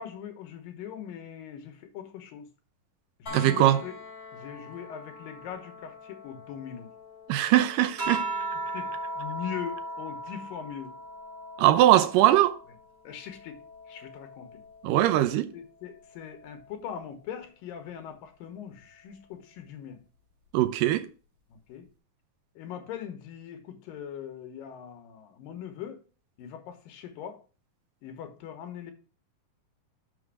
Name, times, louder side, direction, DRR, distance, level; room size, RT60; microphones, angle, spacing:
voice 1, 0.0-2.5 3.2-4.0 4.3-6.9 8.7-10.9 13.0-13.6 13.9-14.6 15.5-20.0 21.7-21.9 22.6-26.0 26.4-27.4 28.0-28.9, left 9 dB, 85° left, 2.8 m, -41 dB
sound 1, 3.3-15.1 17.0-17.1, left 3 dB, 25° left, 3.1 m, -49 dB
voice 2, 3.3-3.8 7.3-8.2 11.6-12.6 14.8-15.5 20.5-21.1, right 13 dB, 80° right, 2.3 m, -21 dB
sound 2, 8.0-12.8 13.2-15.0 16.2-16.7, right 1 dB, 50° right, 3.9 m, -37 dB
6.4 x 6.0 x 4.8 m
omnidirectional pair, 3.9 m